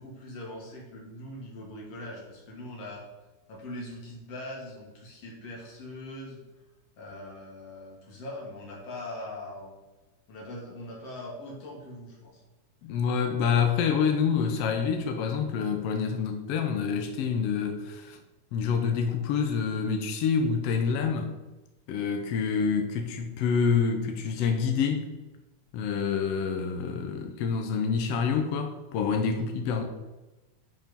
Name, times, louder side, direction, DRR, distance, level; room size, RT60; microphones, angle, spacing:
voice 1, 0.0-3.0 3.5-6.4 7.0-9.7 10.3-12.4, left 1 dB, 50° left, -3 dB, 3.2 m, -41 dB
voice 2, 12.8-18.2 18.5-21.3 21.9-25.1 25.7-29.8, left 6 dB, 75° left, 5 dB, 1.4 m, -27 dB
10.5 x 4.7 x 5.3 m, 1.1 s
omnidirectional pair, 3.6 m